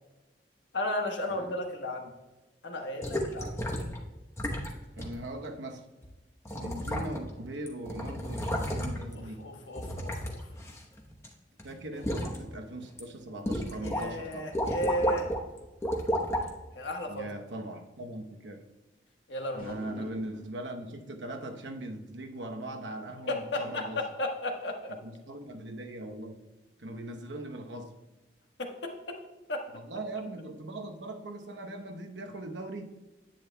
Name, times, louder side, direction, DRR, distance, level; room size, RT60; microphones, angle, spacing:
voice 1, 0.7-2.1 2.6-3.5 9.1-10.5 11.9-12.0 13.8-15.3 16.7-17.2 19.3-19.8 23.3-25.0 28.6-29.2 29.5-29.6, left 1 dB, 85° left, 3 dB, 1.3 m, -34 dB
sound 1, 3.0-4.0 4.4-4.7 5.0-5.1 6.0-6.1 6.4-7.4 7.7-9.1 9.7-11.3 11.6-12.4 12.8-13.0 13.5-14.0 14.3-15.4 15.8-16.5 17.2-17.3, equal, 15° left, 1.0 m, -32 dB
voice 2, 5.0-5.9 6.5-9.4 11.6-14.6 17.1-18.6 19.5-24.0 25.0-26.4 26.8-28.0 29.7-32.9, right 1 dB, 90° right, 4 dB, 1.0 m, -40 dB
sound 2, 19.6-20.6, equal, 50° left, 2.2 m, -47 dB
10.5 x 8.8 x 2.3 m, 1.1 s
head